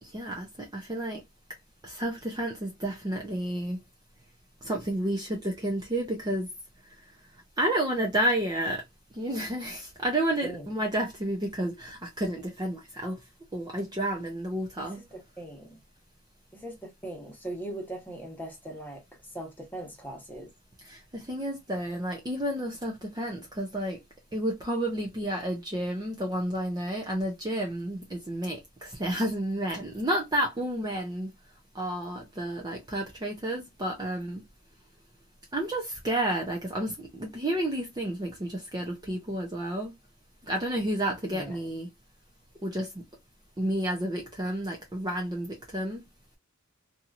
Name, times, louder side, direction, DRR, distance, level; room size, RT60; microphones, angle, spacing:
voice 1, 0.0-1.2 1.8-3.8 4.6-6.5 7.6-8.8 9.1-13.2 13.5-15.1 20.9-24.0 24.3-31.3 31.7-34.5 35.5-39.9 40.4-41.9 42.6-43.0 43.6-46.0, right 1 dB, 20° right, 0.5 m, -31 dB
voice 2, 14.9-15.8 16.5-19.0 19.3-20.5 41.3-41.7, right 1 dB, 10° left, 0.9 m, -40 dB
2.9 x 2.7 x 2.4 m
head